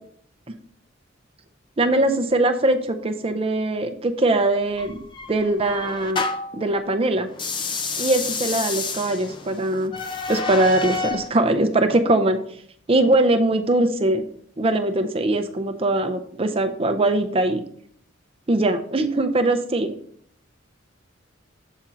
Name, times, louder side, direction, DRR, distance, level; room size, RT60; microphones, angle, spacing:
voice 1, 1.8-5.0 5.3-6.2 6.5-7.3 8.0-9.9 10.3-12.4 12.9-14.2 14.6-17.6 18.5-19.9, right 2 dB, 30° right, 8 dB, 0.5 m, -21 dB
sound 1, 4.8-6.6 7.3-11.3, left 4 dB, 25° left, 0.4 m, -29 dB
7.3 x 4.3 x 3.8 m, 0.63 s
head